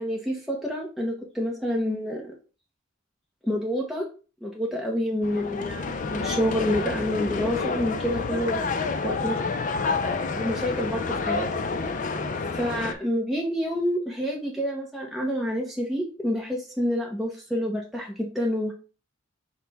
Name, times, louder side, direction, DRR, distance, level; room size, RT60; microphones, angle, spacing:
voice 1, 0.0-2.3 3.5-4.1 4.4-8.6 9.0-9.4 10.3-11.5 12.5-18.7, equal, ahead, -2 dB, 0.6 m, -28 dB
sound 1, 5.2-12.9, left 4 dB, 40° left, 0.4 m, -29 dB
5.7 x 2.2 x 4.0 m, 0.35 s
head